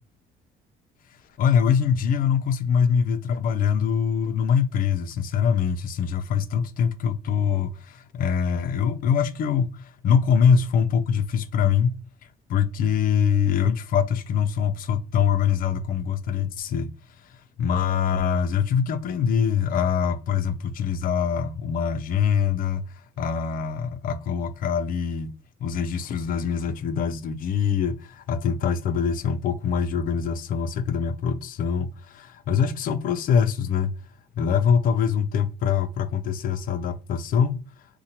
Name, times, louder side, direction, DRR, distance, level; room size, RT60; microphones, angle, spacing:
voice 1, 1.4-11.9 12.5-16.9 17.2-25.3 25.6-34.0 34.4-37.6, left 7 dB, 55° left, 0.4 m, -24 dB
2.8 x 2.2 x 2.8 m
cardioid pair, 110°, 17 cm